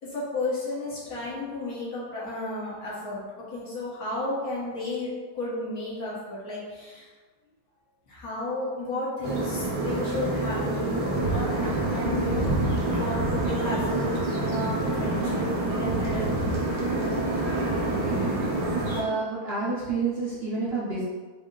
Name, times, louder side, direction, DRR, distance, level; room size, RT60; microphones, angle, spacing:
voice 1, 0.0-7.1 8.1-12.6 13.0-16.5, left 2 dB, 65° left, -7 dB, 1.5 m, -33 dB
sound 1, 9.2-19.0, right 2 dB, 65° right, 1.3 m, -27 dB
voice 2, 17.9-18.3 18.9-21.0, right 3 dB, 50° right, -9 dB, 0.8 m, -29 dB
3.9 x 2.1 x 3.7 m, 1.4 s
omnidirectional pair, 1.7 m